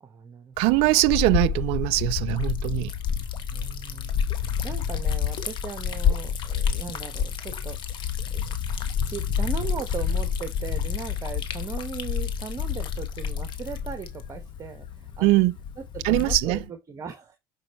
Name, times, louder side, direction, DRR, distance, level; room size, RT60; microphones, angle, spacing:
voice 1, 0.0-0.9 3.5-4.2 4.6-8.4 9.0-15.4 15.8-17.4, right 6 dB, 30° right, 1.3 m, -38 dB
Liquid, 0.6-16.7, left 7 dB, 45° left, 1.4 m, -29 dB
voice 2, 0.6-2.9 15.2-15.6 16.0-16.6, right 20 dB, 65° right, 0.5 m, -22 dB
6.2 x 5.3 x 3.1 m
hypercardioid pair, 80°, 11 cm